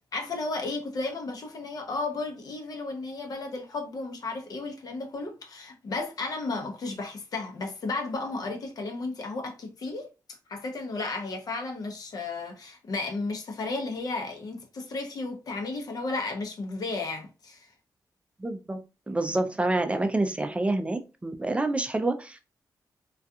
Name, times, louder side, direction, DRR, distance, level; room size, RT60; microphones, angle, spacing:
voice 1, 0.1-10.1 10.5-17.7, left 3 dB, 60° left, 0.7 m, -33 dB
voice 2, 18.4-18.8 19.1-22.4, right 2 dB, 15° right, 0.4 m, -27 dB
2.3 x 2.3 x 2.6 m
cardioid pair, 100°, 7 cm